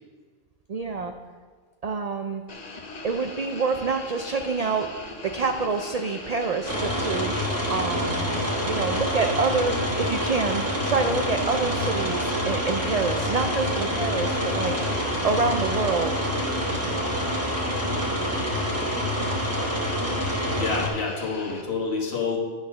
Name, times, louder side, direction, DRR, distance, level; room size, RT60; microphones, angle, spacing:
voice 1, 0.7-1.1 1.8-2.4 3.0-7.3 7.7-14.8 15.2-16.2, right 4 dB, 65° right, 5 dB, 0.3 m, -27 dB
sound 1, 2.5-21.6, left 2 dB, 40° left, 0.8 m, -40 dB
sound 2, 6.6-20.9, equal, 15° right, 1.3 m, -27 dB
voice 2, 20.5-22.4, left 4 dB, 60° left, -2 dB, 1.7 m, -28 dB
10.5 x 4.0 x 6.4 m, 1.5 s
omnidirectional pair, 1.2 m